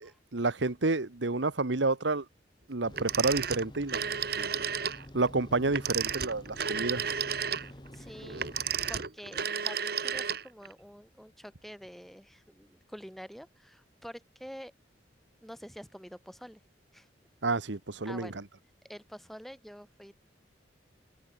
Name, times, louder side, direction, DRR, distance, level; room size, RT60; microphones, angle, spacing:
voice 1, 0.0-2.2 2.7-4.0 4.3-4.6 5.1-7.0 17.4-18.3, right 3 dB, 80° right, 1.3 m, -29 dB
sound 1, 2.8-9.0, equal, 25° left, 2.4 m, -48 dB
Telephone, 2.9-5.0 5.7-10.7, right 7 dB, 55° right, 1.6 m, -32 dB
voice 2, 7.6-8.5 8.9-14.7 15.4-16.6 16.9-17.1 18.0-18.4 18.9-20.1, equal, ahead, 3.1 m, -47 dB
open air
head